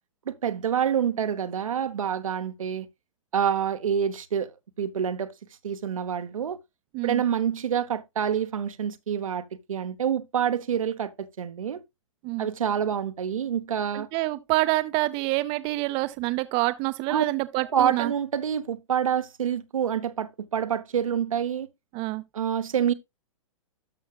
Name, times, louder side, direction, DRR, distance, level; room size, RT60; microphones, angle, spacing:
voice 1, 0.3-2.9 3.3-5.3 5.6-6.6 7.0-11.8 12.4-14.1 17.1-17.2 17.7-21.7 22.3-22.9, right 8 dB, 80° right, 0.9 m, -27 dB
voice 2, 13.9-18.1 21.9-22.2, right 20 dB, 30° right, 0.6 m, -27 dB
12.5 x 6.2 x 2.3 m
hypercardioid pair, 125°, 17 cm